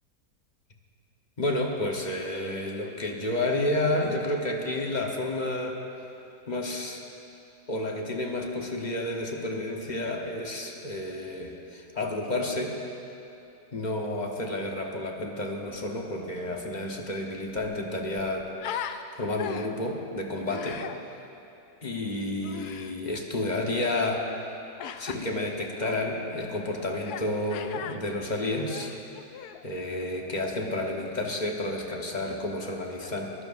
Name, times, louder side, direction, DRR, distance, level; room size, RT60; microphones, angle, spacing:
voice 1, 1.4-5.8 6.5-7.0 7.7-12.8 13.7-20.8 21.8-24.3 25.0-28.9 29.6-33.3, left 1 dB, 30° left, 0 dB, 1.1 m, -30 dB
Human voice, 17.4-19.0 19.4-19.9 20.5-21.0 22.4-22.9 24.8-25.2 25.8-26.0 27.0-27.3 27.5-28.0 28.5-29.6, left 9 dB, 75° left, 1.1 m, -38 dB
23.0 x 15.5 x 2.6 m, 2.8 s
omnidirectional pair, 1.7 m